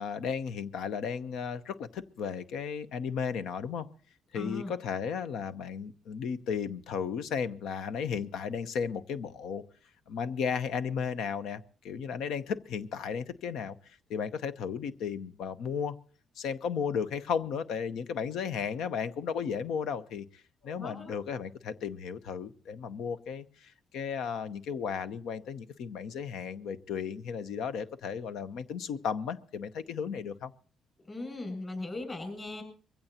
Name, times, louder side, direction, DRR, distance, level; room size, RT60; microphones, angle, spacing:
voice 1, 0.0-3.9 4.3-9.6 10.1-13.8 14.1-16.0 16.4-30.5, left 6 dB, 80° left, 12 dB, 0.8 m, -34 dB
voice 2, 4.3-4.7 20.6-21.2 31.0-32.6, left 2 dB, 30° left, 5 dB, 7.0 m, -38 dB
23.0 x 15.5 x 2.9 m, 0.40 s
cardioid pair, 90°, 0 cm